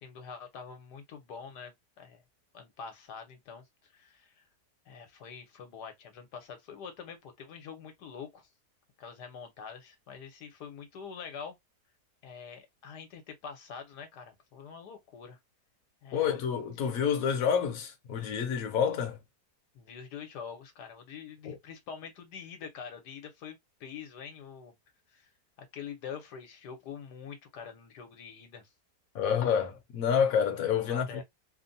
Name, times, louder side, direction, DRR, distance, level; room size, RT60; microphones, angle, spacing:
voice 1, 0.0-2.2 2.5-3.6 3.9-4.4 4.9-8.5 9.0-11.6 12.2-15.4 16.0-16.3 19.7-24.7 25.1-25.3 25.6-28.6 30.8-31.2, left 6 dB, 80° left, 1.5 m, -45 dB
voice 2, 16.1-19.2 21.5-21.6 29.1-31.1, left 7 dB, 65° left, 1.2 m, -28 dB
3.4 x 2.2 x 2.6 m
omnidirectional pair, 1.7 m